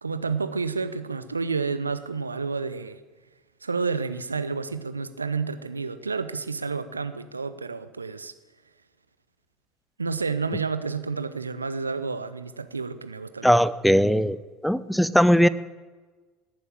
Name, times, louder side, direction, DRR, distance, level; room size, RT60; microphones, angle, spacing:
voice 1, 0.0-3.0 3.6-8.3 10.0-13.5, right 4 dB, 90° right, 12 dB, 0.8 m, -30 dB
voice 2, 13.4-14.4 14.6-15.5, equal, ahead, 17 dB, 0.8 m, -19 dB
18.0 x 9.2 x 8.8 m, 1.3 s
figure-of-eight pair, 65°, 0 cm